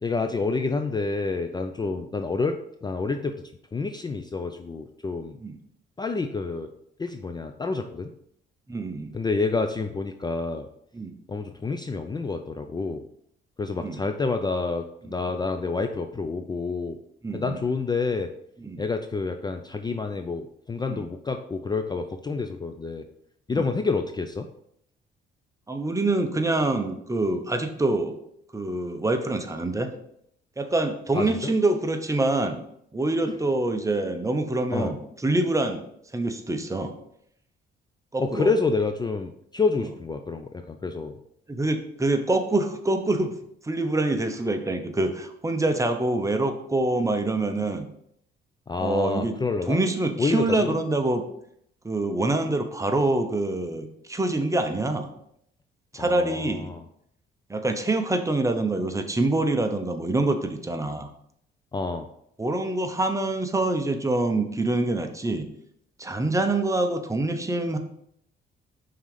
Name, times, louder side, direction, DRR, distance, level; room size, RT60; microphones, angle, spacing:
voice 1, 0.0-3.4 3.7-5.4 6.0-6.7 7.0-8.1 9.1-10.7 11.3-13.0 13.6-17.0 17.3-18.3 18.8-23.1 23.5-24.5 31.1-31.5 33.3-33.4 34.7-35.0 38.2-41.2 48.7-49.8 50.2-50.8 56.0-56.8 61.7-62.1, left 4 dB, 20° left, 6 dB, 0.4 m, -28 dB
voice 2, 8.7-9.1 10.9-11.1 13.8-14.0 17.2-17.5 18.6-18.8 20.9-21.0 23.5-23.7 25.7-28.1 28.5-29.9 30.6-32.6 32.9-35.8 36.1-36.9 38.1-38.5 41.5-43.3 43.6-47.9 48.8-49.4 49.7-51.2 51.8-55.1 55.9-56.7 57.5-61.1 62.4-65.5 66.0-67.8, right 2 dB, 15° right, 6 dB, 0.8 m, -25 dB
5.5 x 3.8 x 4.9 m, 0.72 s
cardioid pair, 90°, 20 cm